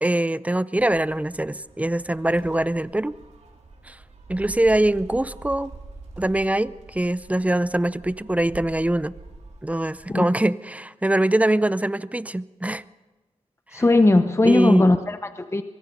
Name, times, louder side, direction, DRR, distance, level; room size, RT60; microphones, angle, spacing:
voice 1, 0.0-3.2 3.9-4.0 4.3-5.7 6.2-9.1 9.6-12.8 13.7-13.8 14.4-14.8, right 1 dB, 10° right, 17 dB, 0.6 m, -23 dB
Gull seagull, 0.8-10.1, right 3 dB, 85° right, 4.2 m, -45 dB
voice 2, 13.7-15.6, left 2 dB, 25° left, 9 dB, 0.9 m, -18 dB
23.5 x 22.0 x 5.4 m, 1.2 s
wide cardioid pair, 75°, 12 cm